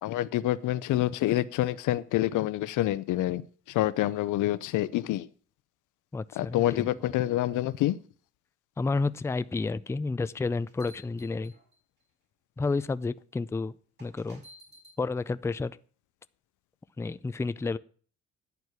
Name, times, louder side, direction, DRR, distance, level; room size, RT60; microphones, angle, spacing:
voice 1, 0.0-3.4 3.7-5.3 6.4-8.0, left 14 dB, 85° left, 0.7 m, -27 dB
voice 2, 6.1-6.9 8.8-11.5 12.6-14.4 15.0-15.8 17.0-17.8, left 3 dB, 10° left, 0.4 m, -31 dB
sound 1, 10.3-12.0 12.8-12.9 14.0-15.0, equal, 35° right, 4.7 m, -54 dB
11.0 x 4.6 x 8.0 m
cardioid pair, 90°, 30 cm